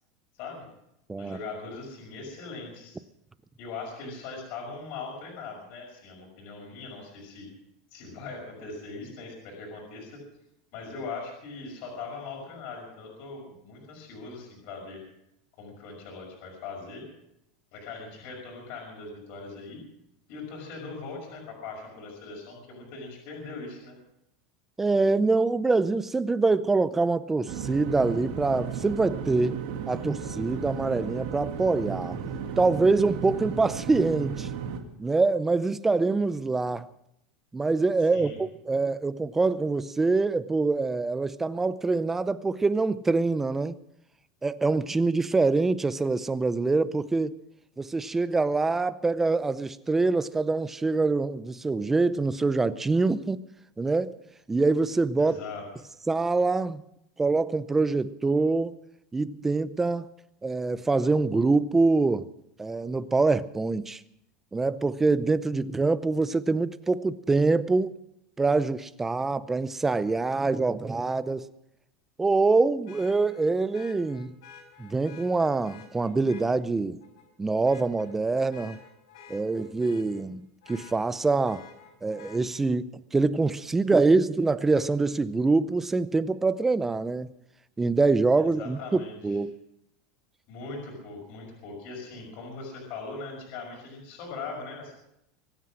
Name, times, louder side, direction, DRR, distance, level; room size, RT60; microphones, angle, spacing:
voice 1, 1.2-3.0 3.6-7.5 7.9-10.2 10.7-15.0 15.6-17.0 17.7-19.8 20.3-24.0 38.1-38.4 55.2-55.6 88.4-89.4 90.5-95.0, left 4 dB, 50° left, 5.7 m, -40 dB
voice 2, 24.8-29.6 29.9-32.2 32.6-34.5 35.0-36.9 37.5-43.8 44.4-47.3 47.8-53.4 53.8-54.1 54.5-55.4 56.1-56.8 57.2-58.8 59.1-60.1 60.4-62.3 62.6-64.0 64.5-67.9 68.4-71.5 72.2-74.3 74.8-77.0 77.4-78.8 79.3-80.4 80.7-81.6 82.0-87.3 87.8-89.6, right 3 dB, 10° right, 0.5 m, -25 dB
sound 1, 27.5-34.8, right 7 dB, 50° right, 2.3 m, -35 dB
Vehicle horn car horn honking, 70.0-70.1 72.9-76.5 77.0-77.3 77.6-80.2 80.6-82.4 84.2-84.3, left 7 dB, 75° left, 6.2 m, -51 dB
23.5 x 9.5 x 6.3 m
supercardioid pair, 155°, 3 cm